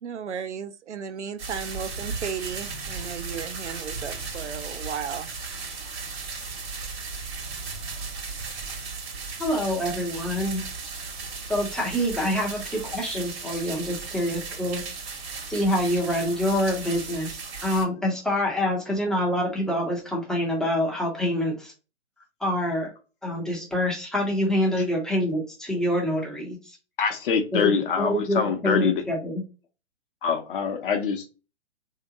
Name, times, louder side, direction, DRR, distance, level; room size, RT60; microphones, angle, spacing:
voice 1, 0.0-5.3, right 7 dB, 80° right, 0.6 m, -34 dB
sound 1, 1.4-17.8, right 4 dB, 60° right, 1.3 m, -36 dB
voice 2, 9.4-10.7 11.5-14.8 15.5-17.4 17.6-21.7 22.4-22.9 23.2-26.8 27.5-29.4, left 1 dB, ahead, 0.5 m, -26 dB
voice 3, 27.0-29.0 30.2-31.3, left 6 dB, 50° left, 0.7 m, -25 dB
3.3 x 2.8 x 2.6 m
figure-of-eight pair, 120°, 35 cm